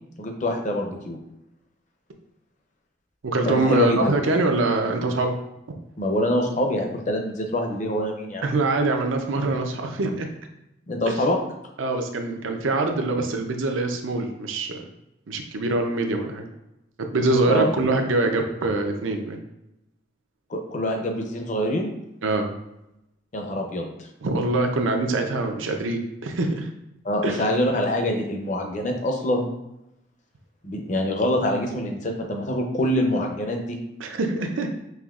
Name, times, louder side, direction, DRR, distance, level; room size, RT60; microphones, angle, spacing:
voice 1, 0.2-1.2 3.4-4.1 6.0-8.4 10.9-11.4 17.5-17.7 20.5-21.9 23.3-24.1 27.0-29.5 30.6-33.8, left 1 dB, 40° left, 3 dB, 0.6 m, -25 dB
voice 2, 3.2-5.3 8.4-10.3 11.1-11.2 11.8-14.8 15.3-16.5 17.0-19.4 22.2-22.5 24.2-26.7 27.2-27.5 34.0-34.7, right 2 dB, 90° right, 4 dB, 0.6 m, -24 dB
5.6 x 2.9 x 2.4 m, 0.87 s
head